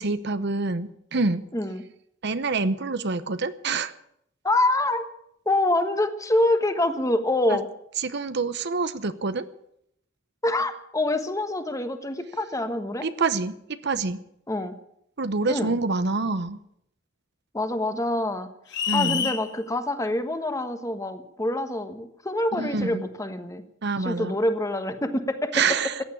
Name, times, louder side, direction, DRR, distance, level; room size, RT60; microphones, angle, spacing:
voice 1, 0.0-1.4 2.2-3.9 7.5-7.6 8.0-9.5 13.0-13.5 13.8-14.2 15.2-16.6 18.9-19.3 22.6-23.0 23.8-24.3 25.5-26.0, right 4 dB, 60° right, 12 dB, 0.9 m, -26 dB
voice 2, 1.5-1.8 4.4-5.1 5.4-7.7 10.4-13.1 14.5-14.7 15.5-15.7 17.5-18.5 18.9-23.6 24.0-25.5, left 1 dB, 15° left, 8 dB, 1.3 m, -26 dB
sound 1, 18.7-19.4, left 9 dB, 60° left, 1.6 m, -27 dB
15.0 x 9.4 x 9.9 m, 0.74 s
head